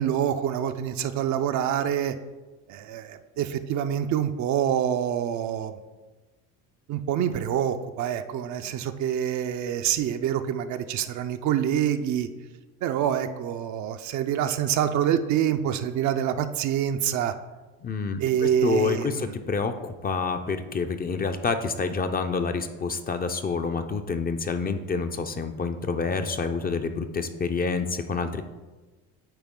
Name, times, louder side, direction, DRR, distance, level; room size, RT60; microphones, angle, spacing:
voice 1, 0.0-2.1 2.7-5.8 6.9-12.3 12.8-17.3 18.2-19.3, right 10 dB, 55° right, 8 dB, 0.6 m, -26 dB
voice 2, 17.8-28.4, left 4 dB, 25° left, 7 dB, 0.5 m, -28 dB
9.1 x 4.1 x 3.7 m, 1.2 s
supercardioid pair, 90°, 34 cm